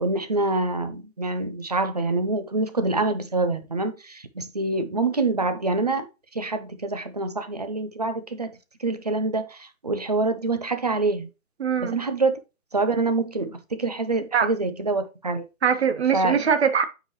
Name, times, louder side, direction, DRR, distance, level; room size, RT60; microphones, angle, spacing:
voice 1, 0.0-6.1 6.3-8.5 8.8-11.3 11.8-12.4 12.7-15.4 16.1-16.5, right 3 dB, 30° right, 0.5 m, -26 dB
voice 2, 11.6-12.0 14.3-14.5 15.6-16.8, right 7 dB, 50° right, 1.2 m, -22 dB
8.9 x 4.7 x 3.0 m
hypercardioid pair, 165°, 41 cm